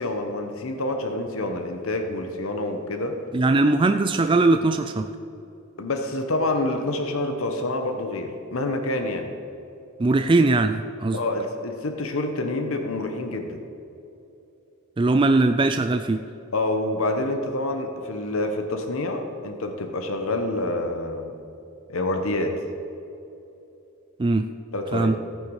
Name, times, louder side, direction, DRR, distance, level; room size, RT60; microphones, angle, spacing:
voice 1, 0.0-3.2 5.8-9.3 11.1-13.6 16.5-21.3 21.9-22.6 24.7-25.1, left 2 dB, 70° left, 5 dB, 1.1 m, -27 dB
voice 2, 3.3-5.1 10.0-11.2 15.0-16.2 24.2-24.5 24.9-25.2, right 2 dB, 25° right, 8 dB, 0.3 m, -20 dB
15.0 x 9.2 x 4.9 m, 2.8 s
head